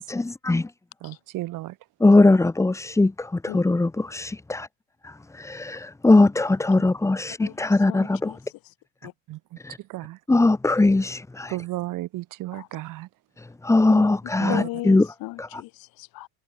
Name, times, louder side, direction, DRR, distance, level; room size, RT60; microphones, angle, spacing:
voice 1, 0.1-0.7 2.0-4.7 5.0-8.3 9.6-9.8 10.3-11.6 13.4-15.1 15.4-15.5, left 2 dB, 5° left, 2.4 m, -20 dB
voice 2, 1.0-1.8 9.3-9.4 9.9-10.2 11.5-13.1 14.4-14.7, right 17 dB, 45° right, 5.9 m, -33 dB
voice 3, 7.9-8.4 8.6-8.7 9.0-9.1 12.5-12.8 13.9-14.0 14.4-16.3, left 20 dB, 50° left, 6.1 m, -36 dB
cardioid pair, 160°, 43 cm